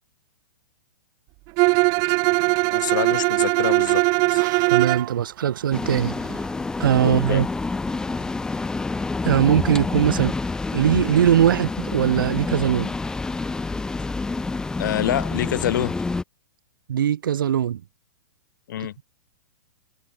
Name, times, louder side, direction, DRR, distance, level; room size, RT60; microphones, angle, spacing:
Bowed string instrument, 1.6-5.1, right 30 dB, 30° right, 0.5 m, -20 dB
voice 1, 2.7-4.4 7.0-7.5 14.8-16.0 18.7-18.9, left 12 dB, 65° left, 2.7 m, -26 dB
sound 1, 3.2-8.7, right 13 dB, 60° right, 3.3 m, -45 dB
voice 2, 4.7-6.2 6.8-7.5 9.2-10.3 10.7-12.9 16.9-17.8, right 10 dB, 80° right, 1.3 m, -20 dB
sound 2, 5.7-16.2, left 3 dB, 5° left, 1.8 m, -28 dB
hypercardioid pair, 150°, 11 cm